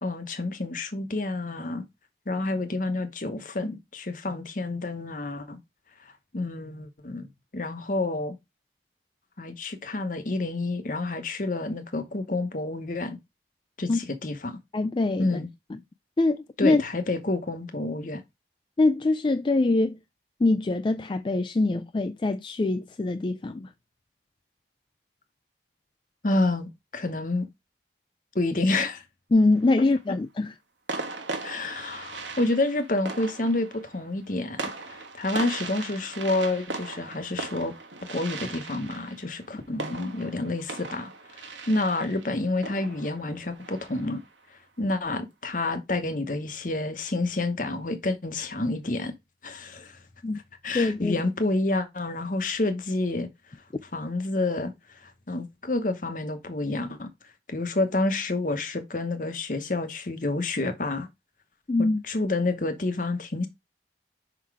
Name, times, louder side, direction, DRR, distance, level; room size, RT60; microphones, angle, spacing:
voice 1, 0.0-1.8 2.3-5.6 6.3-7.3 7.5-8.4 9.4-13.2 13.8-14.6 15.2-15.5 16.6-18.2 26.2-27.5 28.3-29.0 31.4-34.6 34.9-37.7 38.1-44.2 44.8-49.1 49.4-50.0 50.6-53.3 53.9-54.7 55.0-57.1 57.5-61.1 61.8-63.5, left 2 dB, 45° left, 0.9 m, -29 dB
voice 2, 14.7-15.4 15.7-15.8 16.2-16.8 18.8-20.0 20.4-23.7 29.3-30.5 50.2-50.4 50.7-51.2 61.7-62.0, left 2 dB, 25° left, 0.3 m, -23 dB
sound 1, 29.4-30.0 30.9-44.3, right 3 dB, 90° right, 1.2 m, -38 dB
5.7 x 3.9 x 4.7 m
head